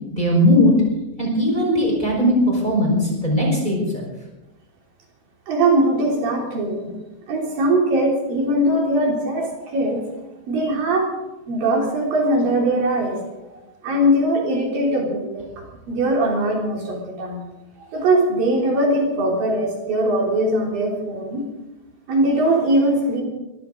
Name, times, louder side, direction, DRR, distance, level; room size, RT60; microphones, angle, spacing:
voice 1, 0.1-0.7 1.2-2.3 2.6-3.8, equal, 10° left, -2 dB, 4.7 m, -18 dB
voice 2, 5.5-6.9 7.3-10.0 10.5-11.1 11.5-13.2 13.8-17.4 17.8-21.4 22.1-23.2, right 1 dB, 70° right, -1 dB, 4.9 m, -21 dB
25.0 x 14.5 x 3.9 m, 1.0 s
omnidirectional pair, 4.2 m